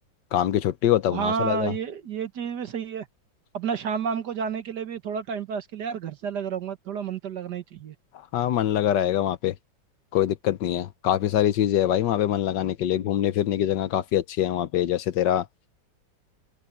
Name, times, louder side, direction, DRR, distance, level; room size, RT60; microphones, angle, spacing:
voice 1, 0.3-1.7 8.3-9.5 10.1-15.5, left 11 dB, 70° left, 1.3 m, -24 dB
voice 2, 1.1-3.1 3.5-8.0, right 6 dB, 60° right, 1.8 m, -30 dB
omnidirectional pair, 2.1 m